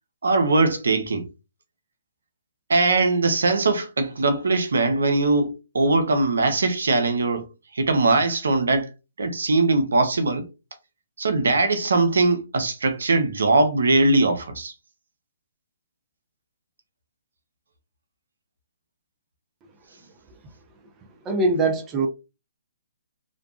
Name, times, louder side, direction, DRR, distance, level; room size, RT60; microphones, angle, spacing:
voice 1, 0.2-1.3 2.7-7.5 7.7-8.9 9.2-10.5 11.2-14.7, right 3 dB, 80° right, 0.6 m, -21 dB
voice 2, 21.2-22.1, right 3 dB, 20° right, 0.5 m, -22 dB
2.4 x 2.2 x 2.3 m
hypercardioid pair, 140°, 0 cm